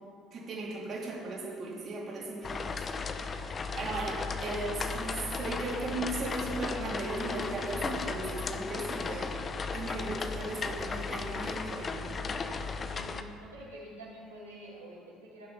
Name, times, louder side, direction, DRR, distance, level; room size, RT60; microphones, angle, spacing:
voice 1, 0.3-2.9 3.2-9.4 9.7-12.1, right 2 dB, 45° right, -4 dB, 3.6 m, -37 dB
sound 1, 2.4-13.2, left 4 dB, 35° left, 1.1 m, -35 dB
voice 2, 12.8-15.5, right 1 dB, 90° right, -8 dB, 4.0 m, -47 dB
16.5 x 10.5 x 5.4 m, 2.2 s
figure-of-eight pair, 60°, 0 cm